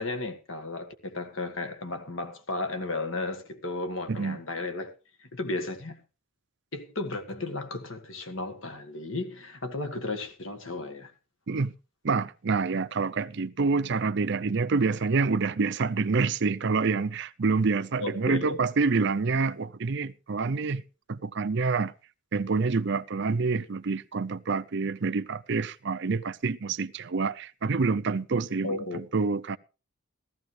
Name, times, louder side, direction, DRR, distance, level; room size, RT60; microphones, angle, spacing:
voice 1, 0.0-4.9 5.2-6.0 6.7-11.1 18.0-18.6 28.6-29.0, left 2 dB, 65° left, 1.7 m, -34 dB
voice 2, 4.1-4.4 11.5-11.7 12.0-20.8 21.1-21.9 22.3-29.6, right 4 dB, 55° right, 0.5 m, -27 dB
15.5 x 14.0 x 3.3 m
head